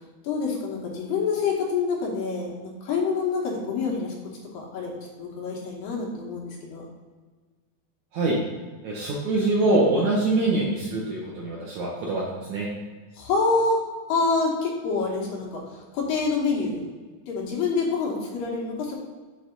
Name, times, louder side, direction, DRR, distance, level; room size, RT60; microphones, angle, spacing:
voice 1, 0.2-4.1 4.5-6.8 13.1-13.8 14.1-16.8 17.3-19.0, left 4 dB, 70° left, -3 dB, 2.7 m, -27 dB
voice 2, 8.8-12.7, right 2 dB, 70° right, -4 dB, 1.8 m, -24 dB
7.8 x 3.3 x 5.1 m, 1.4 s
omnidirectional pair, 4.4 m